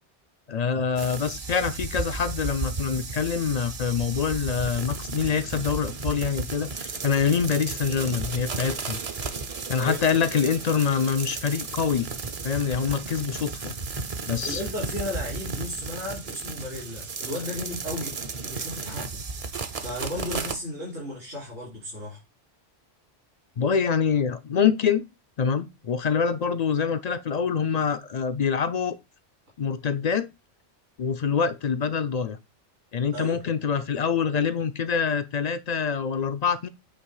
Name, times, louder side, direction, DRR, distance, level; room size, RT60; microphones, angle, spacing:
voice 1, 0.5-9.0 9.7-12.1 12.4-13.7 14.3-14.6 23.6-25.1 25.4-28.9 29.6-30.3 31.0-32.4 32.9-36.7, left 6 dB, 55° left, 0.4 m, -25 dB
sound 1, 1.0-20.6, right 4 dB, 40° right, 0.6 m, -34 dB
voice 2, 14.4-18.1 18.4-19.2 19.8-22.2 33.1-33.5, left 1 dB, 70° right, 3.2 m, -34 dB
8.6 x 3.0 x 4.7 m
omnidirectional pair, 1.2 m